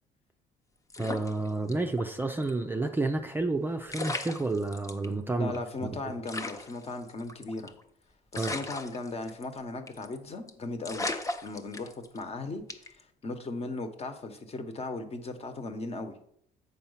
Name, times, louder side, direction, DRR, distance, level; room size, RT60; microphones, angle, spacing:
sound 1, 0.9-2.1 2.4-2.5 3.5-3.6 3.9-5.1 5.5-5.6 5.8-5.9 6.3-7.8 8.3-9.6 9.9-10.2 10.5-10.6 10.8-12.2 12.7-13.0, left 2 dB, 20° left, 0.9 m, -36 dB
voice 1, 1.0-5.9 8.4-8.6, right 2 dB, 10° right, 4 dB, 0.5 m, -30 dB
voice 2, 5.4-7.7 8.3-11.1 11.4-16.2, left 2 dB, 35° left, 7 dB, 1.2 m, -37 dB
8.2 x 4.4 x 5.7 m, 0.70 s
cardioid pair, 110°, 17 cm